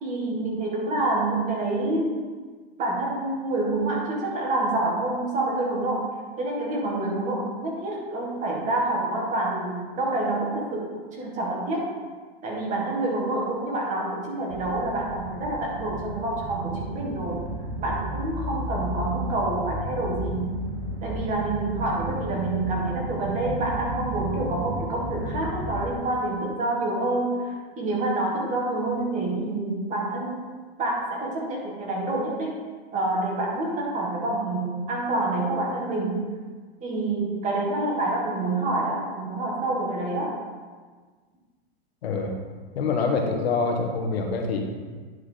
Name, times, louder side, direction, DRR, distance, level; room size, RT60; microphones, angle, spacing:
voice 1, 0.0-2.2 2.8-6.1 6.4-11.9 12.4-17.5 17.8-20.6 21.0-32.5 32.9-36.2 36.8-40.3, right 2 dB, 25° right, -2 dB, 1.6 m, -27 dB
sound 1, 14.5-25.9, right 1 dB, 65° right, 1.0 m, -33 dB
voice 2, 42.0-42.3 42.7-44.6, left 4 dB, 85° left, 2 dB, 1.4 m, -25 dB
9.3 x 4.1 x 5.0 m, 1.5 s
supercardioid pair, 145°, 31 cm